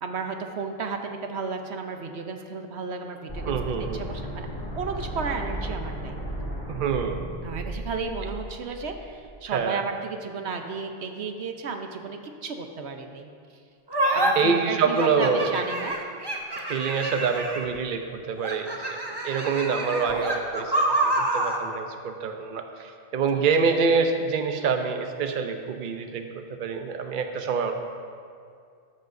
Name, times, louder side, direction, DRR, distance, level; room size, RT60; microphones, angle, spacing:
voice 1, 0.0-3.6 3.9-4.5 4.7-6.2 7.4-13.3 14.1-16.0 23.3-23.5, right 4 dB, 85° right, 5 dB, 1.1 m, -33 dB
sound 1, 3.3-9.3, right 1 dB, 40° left, 3.5 m, -35 dB
voice 2, 3.5-4.0 6.7-7.2 9.5-9.8 14.4-15.5 16.7-27.7, right 5 dB, 55° right, 5 dB, 0.8 m, -26 dB
sound 2, 13.9-14.3 15.0-17.8 18.4-21.6, right 2 dB, 25° right, 1.0 m, -27 dB
13.5 x 12.5 x 2.6 m, 2.3 s
omnidirectional pair, 1.1 m